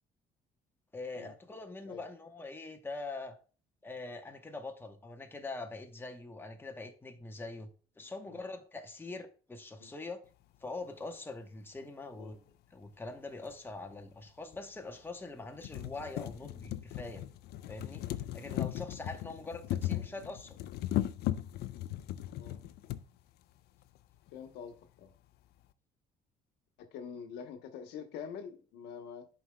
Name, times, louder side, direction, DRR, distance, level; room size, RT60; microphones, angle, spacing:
voice 1, 0.9-3.4 3.8-7.7 8.0-10.2 10.6-12.4 12.7-17.2 17.7-18.1 18.3-20.6, left 3 dB, 15° left, 0.9 m, -43 dB
sound 1, 13.5-13.6 14.5-14.6 15.1-15.2 15.5-23.0 24.0-24.1 24.3-24.4, left 13 dB, 75° left, 0.4 m, -37 dB
voice 2, 24.3-25.1 26.8-29.3, left 7 dB, 90° left, 1.0 m, -45 dB
11.0 x 4.7 x 2.2 m
cardioid pair, 110°, 17 cm